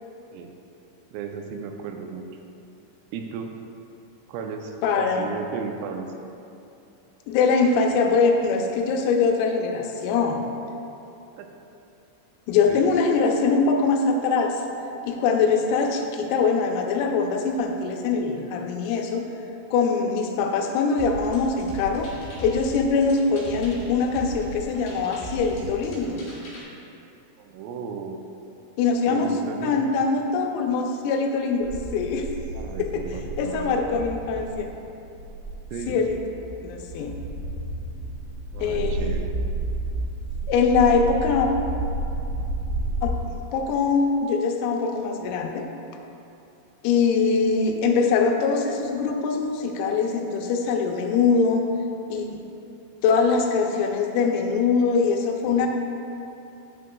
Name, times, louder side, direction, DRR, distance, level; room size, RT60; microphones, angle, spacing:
voice 1, 1.1-2.3 3.1-3.5 4.3-6.1 11.4-11.5 12.7-12.9 27.4-28.2 29.1-29.9 32.6-33.8 35.7-36.0 38.5-39.3, right 6 dB, 90° right, 4 dB, 3.3 m, -35 dB
voice 2, 4.8-5.2 7.3-10.4 12.5-14.6 15.1-19.2 19.7-22.1 22.4-26.2 28.8-29.3 29.6-32.3 32.8-33.0 33.4-34.7 35.9-36.2 36.6-37.1 38.6-39.2 40.5-41.5 43.0-45.6 46.8-51.6 52.1-52.4 53.0-55.7, left 5 dB, 85° left, 3 dB, 3.3 m, -23 dB
sound 1, 21.0-26.6, right 1 dB, 60° left, 3.1 m, -38 dB
sound 2, 31.6-43.2, right 2 dB, 75° right, 2.9 m, -31 dB
9.1 x 7.6 x 2.3 m, 2.7 s
omnidirectional pair, 5.9 m